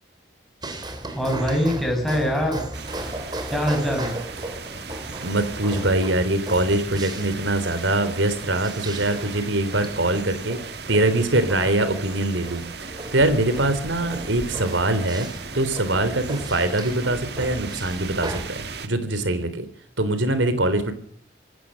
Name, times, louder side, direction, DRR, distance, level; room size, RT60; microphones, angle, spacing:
sound 1, 0.6-18.4, right 1 dB, 20° right, 3.7 m, -36 dB
voice 1, 1.1-2.6 3.5-4.2, equal, ahead, 1 dB, 6.2 m, -23 dB
sound 2, 2.7-18.9, right 4 dB, 60° right, 1.9 m, -37 dB
voice 2, 5.2-15.3 15.5-19.7 20.0-20.9, right 2 dB, 85° right, 12 dB, 3.6 m, -23 dB
26.0 x 15.5 x 6.5 m, 0.63 s
head